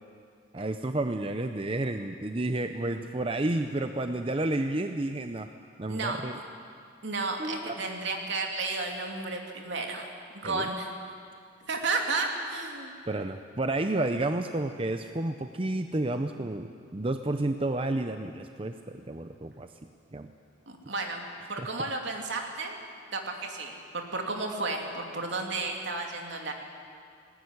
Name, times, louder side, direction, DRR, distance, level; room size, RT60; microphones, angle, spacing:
voice 1, 0.5-5.5 5.8-6.4 7.4-7.9 10.4-10.7 13.1-19.7 20.1-20.3 21.6-21.7, right 2 dB, 30° right, 7 dB, 0.7 m, -31 dB
voice 2, 7.0-10.1 10.3-10.9 11.6-12.9 20.7-21.2 21.5-22.8 23.1-26.5, right 3 dB, 70° right, 2 dB, 3.0 m, -32 dB
19.5 x 19.0 x 9.7 m, 2.2 s
head